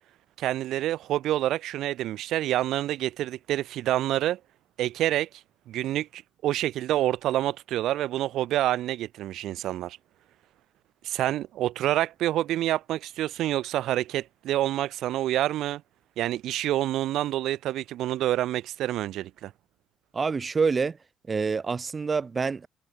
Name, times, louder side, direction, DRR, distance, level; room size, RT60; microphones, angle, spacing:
voice 1, 0.4-4.4 4.8-5.3 5.7-10.0 11.0-15.8 16.2-19.5, right 13 dB, 65° right, 2.3 m, -27 dB
voice 2, 20.1-21.0 21.3-22.7, right 5 dB, 20° right, 1.3 m, -26 dB
cardioid pair, 175°, 0 cm